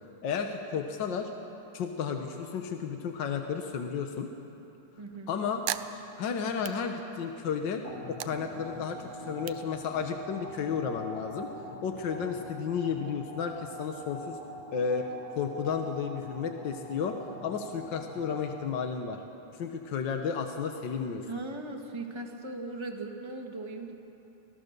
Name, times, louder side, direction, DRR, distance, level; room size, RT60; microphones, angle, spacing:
voice 1, 0.2-1.3 1.7-4.3 5.3-5.6 6.2-7.8 8.1-11.5 11.8-14.4 14.7-15.1 15.3-17.2 17.4-19.2 19.5-21.2, left 6 dB, 65° left, 5 dB, 1.1 m, -32 dB
voice 2, 5.0-5.3 21.2-24.0, right 2 dB, 15° right, 1 dB, 1.2 m, -38 dB
sound 1, 5.0-7.5 7.9-10.5, right 14 dB, 85° right, 2.1 m, -41 dB
sound 2, 7.8-19.2, right 1 dB, 30° left, 2.6 m, -44 dB
25.0 x 18.0 x 6.7 m, 3.0 s
omnidirectional pair, 3.5 m